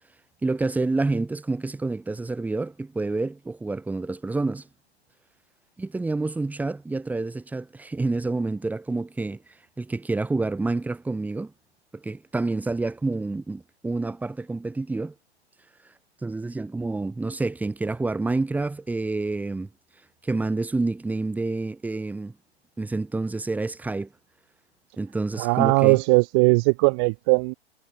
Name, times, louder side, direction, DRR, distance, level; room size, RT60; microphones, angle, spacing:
voice 1, 0.4-4.7 5.8-9.4 9.8-11.5 11.9-15.1 16.2-19.7 20.2-22.3 22.8-24.1 25.0-26.0, right 3 dB, 5° right, 1.7 m, -28 dB
voice 2, 25.3-27.5, right 34 dB, 25° right, 0.6 m, -19 dB
figure-of-eight pair, 115°, 34 cm